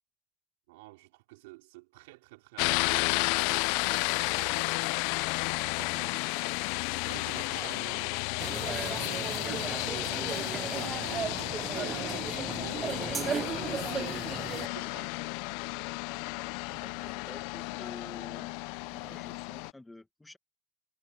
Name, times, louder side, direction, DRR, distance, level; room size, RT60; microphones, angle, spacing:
voice 1, 0.7-4.9 5.7-6.3 7.0-8.2 8.9-10.0 10.6-12.3 12.6-15.2, right 22 dB, 75° right, 2.9 m, -48 dB
sound 1, 2.6-19.7, left 27 dB, 65° left, 0.4 m, -32 dB
voice 2, 7.6-8.0 16.7-18.5 18.9-20.4, left 2 dB, 5° left, 1.6 m, -49 dB
sound 2, 8.4-14.7, right 6 dB, 25° right, 0.5 m, -36 dB
supercardioid pair, 125°, 0 cm